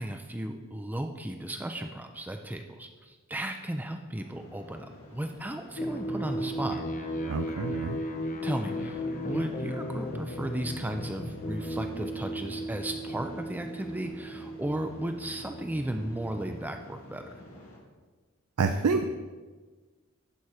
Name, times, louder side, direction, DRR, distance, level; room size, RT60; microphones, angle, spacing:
voice 1, 0.0-6.8 7.1-7.2 8.4-17.4, right 1 dB, 10° right, 5 dB, 0.4 m, -35 dB
sound 1, 4.1-17.8, left 1 dB, 70° left, 1.9 m, -50 dB
sound 2, 5.8-16.7, equal, 35° left, 0.7 m, -36 dB
voice 2, 7.2-8.0 18.6-19.0, right 4 dB, 85° right, 6 dB, 0.5 m, -27 dB
11.0 x 4.3 x 4.7 m, 1.3 s
head